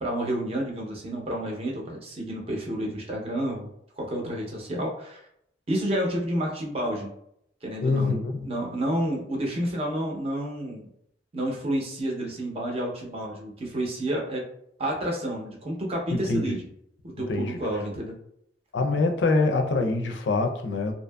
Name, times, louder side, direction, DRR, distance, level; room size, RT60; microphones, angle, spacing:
voice 1, 0.0-3.7 4.0-5.2 5.7-7.1 7.6-10.9 11.3-14.4 14.8-16.6 17.0-18.1, right 1 dB, 35° right, -1 dB, 0.6 m, -30 dB
voice 2, 7.8-8.5 16.1-16.6 17.3-17.6 18.7-20.9, left 3 dB, 90° left, 5 dB, 0.4 m, -25 dB
2.7 x 2.5 x 2.2 m, 0.72 s
head